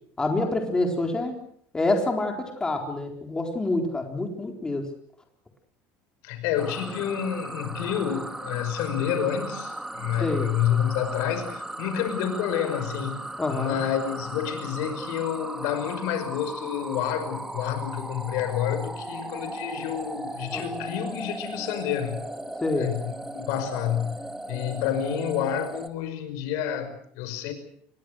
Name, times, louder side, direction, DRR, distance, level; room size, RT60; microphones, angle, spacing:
voice 1, 0.2-1.4 1.7-4.9 10.2-10.5 13.4-13.8 20.5-20.6 22.6-22.9, left 2 dB, 15° left, 3 dB, 4.2 m, -27 dB
voice 2, 6.2-13.2 13.5-22.2 22.8-24.2 24.5-27.5, left 9 dB, 70° left, 10 dB, 5.5 m, -29 dB
sound 1, 6.6-25.9, right 1 dB, 5° right, 1.9 m, -37 dB
27.0 x 22.0 x 6.4 m, 0.63 s
cardioid pair, 145°, 6 cm